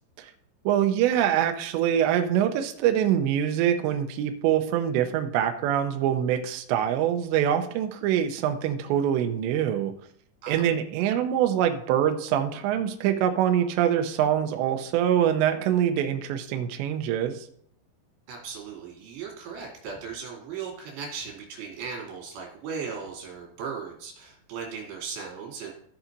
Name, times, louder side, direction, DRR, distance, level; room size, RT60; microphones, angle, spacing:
voice 1, 0.7-9.9 10.5-17.4, right 10 dB, 85° right, 6 dB, 2.6 m, -24 dB
voice 2, 10.4-10.8 18.3-25.7, right 6 dB, 65° right, -1 dB, 4.6 m, -37 dB
14.5 x 7.2 x 2.6 m, 0.64 s
omnidirectional pair, 5.8 m